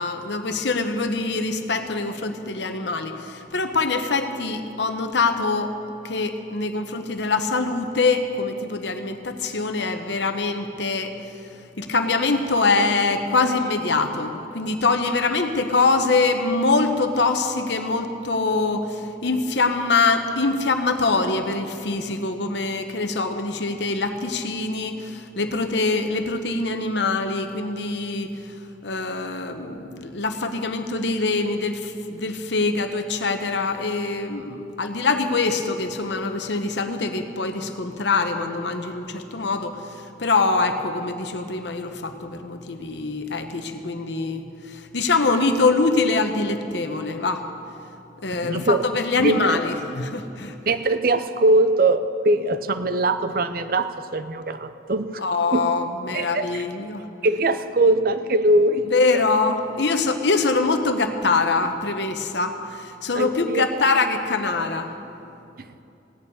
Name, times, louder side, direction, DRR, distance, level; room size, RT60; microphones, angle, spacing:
voice 1, 0.0-5.8 6.0-11.2 11.8-28.3 28.8-47.5 48.2-50.6 55.2-57.0 58.9-64.9, left 3 dB, 70° left, 7 dB, 1.0 m, -24 dB
voice 2, 48.4-48.8 49.2-49.6 50.7-55.1 55.5-55.6 56.1-56.6 57.2-58.9 63.1-63.6 65.6-65.7, right 2 dB, 50° right, 11 dB, 0.6 m, -21 dB
16.5 x 7.0 x 8.6 m, 2.8 s
head